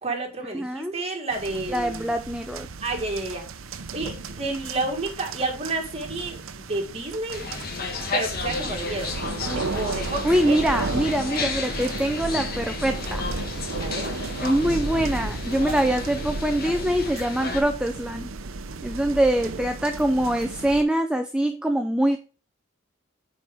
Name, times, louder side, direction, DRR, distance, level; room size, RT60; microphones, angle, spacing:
voice 1, 0.0-2.1 2.8-3.5 3.9-7.5 8.1-9.1 9.4-10.6 11.5-11.6 13.8-14.1, right 2 dB, 30° right, 3 dB, 1.7 m, -30 dB
voice 2, 0.5-1.0 1.7-2.7 10.2-13.2 14.4-18.3 18.8-22.2, right 1 dB, 5° right, 6 dB, 0.4 m, -24 dB
sound 1, 1.3-20.8, right 3 dB, 85° right, 0.7 m, -34 dB
sound 2, 7.3-17.6, left 4 dB, 50° left, 1.3 m, -33 dB
8.9 x 4.3 x 3.5 m, 0.37 s
head